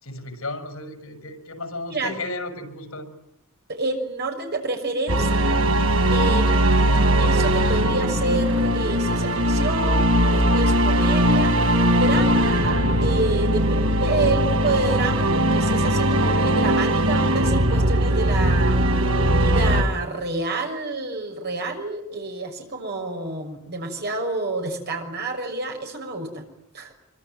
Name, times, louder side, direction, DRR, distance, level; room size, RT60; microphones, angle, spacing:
voice 1, 0.0-3.1, left 2 dB, 80° left, 7 dB, 6.0 m, -34 dB
voice 2, 3.7-5.6 6.1-11.6 11.9-18.8 19.3-26.4 26.7-26.9, right 2 dB, 50° right, 3 dB, 6.4 m, -29 dB
sound 1, 5.1-19.8, right 1 dB, 80° right, 3.7 m, -20 dB
26.5 x 24.5 x 9.3 m, 0.81 s
head